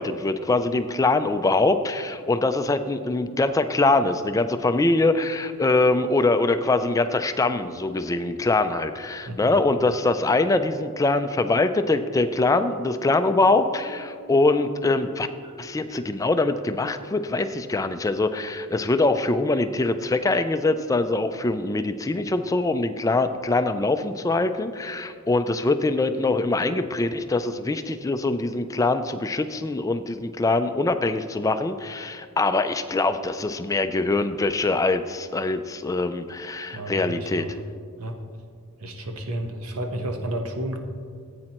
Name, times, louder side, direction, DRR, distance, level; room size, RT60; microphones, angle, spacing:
voice 1, 0.0-15.3 15.6-37.5, left 2 dB, 15° left, 9 dB, 0.3 m, -23 dB
Marimba xylophone, 12.7-18.2, right 2 dB, 20° right, 0.9 m, -48 dB
voice 2, 36.7-37.5 38.0-38.2 38.8-40.8, right 1 dB, 90° right, 4 dB, 1.1 m, -31 dB
15.0 x 8.7 x 3.0 m, 2.1 s
head